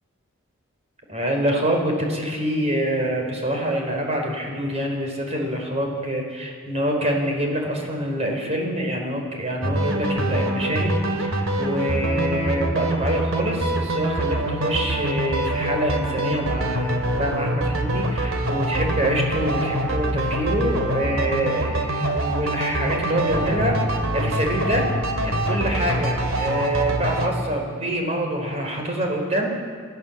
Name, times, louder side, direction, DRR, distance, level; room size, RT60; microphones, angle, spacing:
voice 1, 1.1-24.9 25.2-29.5, equal, 35° right, 1 dB, 4.5 m, -26 dB
sound 1, 9.6-27.3, right 1 dB, 85° right, 2.6 m, -25 dB
29.5 x 13.5 x 7.4 m, 2.1 s
head